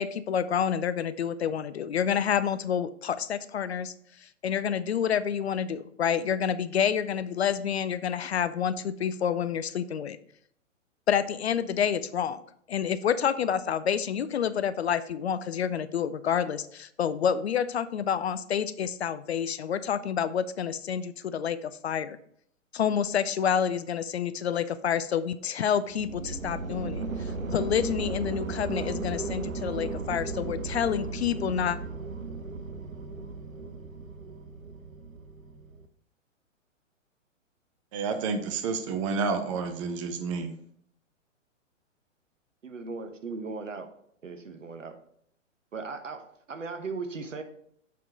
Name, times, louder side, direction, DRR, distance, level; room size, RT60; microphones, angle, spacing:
voice 1, 0.0-3.9 4.4-10.2 11.1-12.4 12.7-22.2 22.7-31.8, left 8 dB, 55° left, 14 dB, 0.5 m, -28 dB
sound 1, 25.9-35.9, right 3 dB, 90° right, 0.7 m, -35 dB
voice 2, 37.9-40.5, right 4 dB, 25° right, 7 dB, 0.7 m, -30 dB
voice 3, 42.6-43.9 44.2-44.9 45.7-47.4, right 4 dB, 70° right, 7 dB, 1.1 m, -37 dB
7.4 x 3.8 x 4.2 m, 0.67 s
figure-of-eight pair, 115°, 39 cm